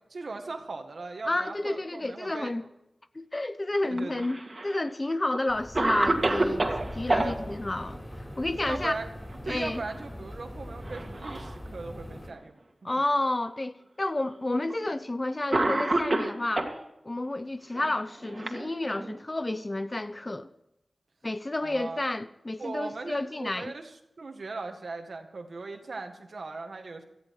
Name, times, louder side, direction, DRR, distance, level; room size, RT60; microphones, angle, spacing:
voice 1, 0.1-2.7 3.8-4.2 7.1-7.6 8.6-9.1 9.4-12.6 21.6-22.0 22.6-27.0, right 3 dB, 75° right, 1.8 m, -38 dB
voice 2, 1.3-2.6 3.1-8.0 8.4-9.0 9.5-9.8 12.8-16.7 17.0-20.5 21.2-23.7, left 2 dB, 35° left, 0.6 m, -30 dB
Cough, 3.9-4.8 5.3-5.4 5.8-7.3 9.2-9.6 9.9-10.0 10.8-11.5 12.3-12.4 13.5-13.6 14.7-14.9 15.5-16.8 17.7-19.2, right 2 dB, 45° right, 2.1 m, -28 dB
sound 1, 5.5-12.3, equal, 5° left, 4.3 m, -41 dB
17.0 x 13.5 x 4.8 m
wide cardioid pair, 65°, 0 cm